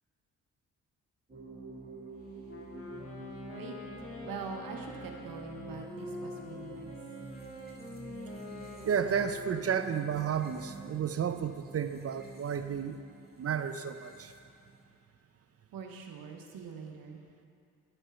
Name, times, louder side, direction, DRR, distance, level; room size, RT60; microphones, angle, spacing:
sound 1, 1.3-14.8, right 3 dB, 25° right, 1.9 m, -48 dB
Wind instrument woodwind instrument, 2.4-10.3, left 3 dB, 40° left, 1.7 m, -46 dB
voice 1, 3.5-6.9 8.8-8.9 15.7-17.2, right 5 dB, 75° right, 3 dB, 1.0 m, -44 dB
voice 2, 8.8-13.0 13.4-14.3, right 7 dB, 45° right, 10 dB, 0.5 m, -32 dB
9.0 x 4.5 x 5.7 m, 2.6 s
supercardioid pair, 45°, 35 cm